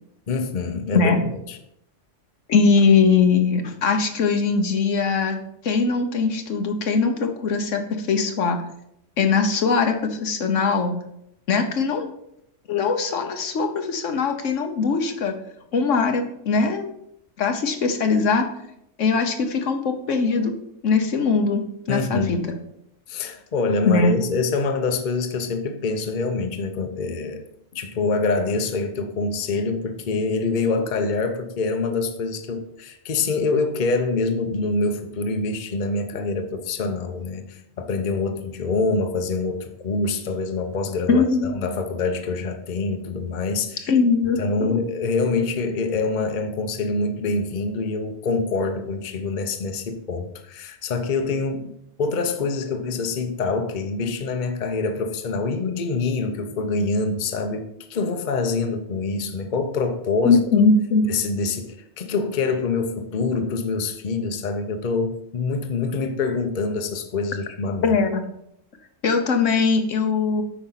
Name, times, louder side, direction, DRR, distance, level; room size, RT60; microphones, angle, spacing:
voice 1, 0.3-1.6 21.9-22.4 23.1-27.4 27.7-43.9 44.4-60.4 61.1-68.0, left 3 dB, 45° left, 7 dB, 0.9 m, -25 dB
voice 2, 2.5-5.4 5.6-8.6 9.2-10.9 11.5-12.1 12.7-15.4 15.7-16.9 17.4-18.5 19.0-20.5 20.8-22.6 23.8-24.2 41.1-41.5 43.9-44.8 60.2-61.0 67.8-68.2 69.0-70.4, left 4 dB, 80° left, 5 dB, 1.4 m, -21 dB
8.6 x 5.2 x 5.7 m, 0.76 s
omnidirectional pair, 1.3 m